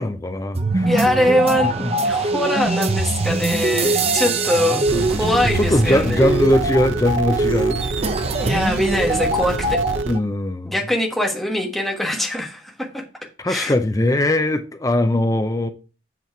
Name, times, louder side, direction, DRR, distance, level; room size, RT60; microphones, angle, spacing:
voice 1, 0.0-0.9 1.8-1.9 2.2-2.3 4.7-5.2 5.5-8.2 10.1-10.7 13.4-15.7, left 1 dB, 15° left, 0.5 m, -21 dB
sound 1, 0.5-10.2, right 2 dB, 30° right, 0.6 m, -22 dB
voice 2, 0.8-1.7 2.0-4.8 5.1-6.4 8.4-9.8 10.6-13.0 13.5-13.7, left 1 dB, ahead, 1.3 m, -22 dB
sound 2, 4.8-10.1, right 3 dB, 70° right, 0.6 m, -28 dB
8.1 x 4.5 x 4.6 m
head